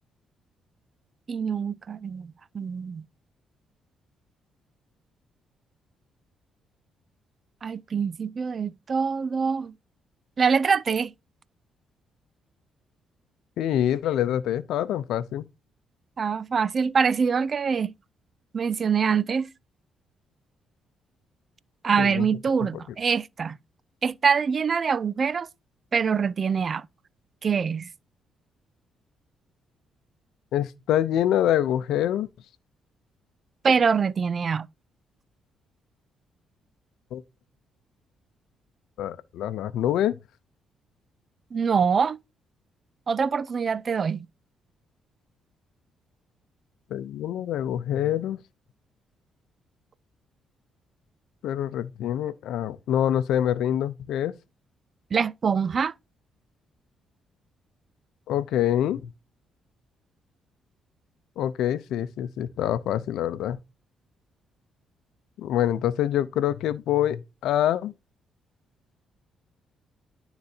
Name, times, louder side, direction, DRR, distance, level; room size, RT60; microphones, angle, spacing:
voice 1, 1.3-3.1 7.6-9.7 10.4-11.1 16.2-17.9 18.5-19.5 21.8-23.6 24.0-25.5 25.9-26.9 27.4-27.9 33.6-34.7 41.5-42.2 43.1-44.3 55.1-55.9, right 6 dB, 45° right, 0.4 m, -24 dB
voice 2, 13.6-15.5 22.0-22.3 30.5-32.3 37.1-37.2 39.0-40.2 46.9-48.4 51.4-54.4 58.3-59.1 61.4-63.6 65.4-67.9, left 11 dB, 80° left, 0.6 m, -25 dB
11.5 x 4.0 x 2.7 m
cardioid pair, 90°, 0 cm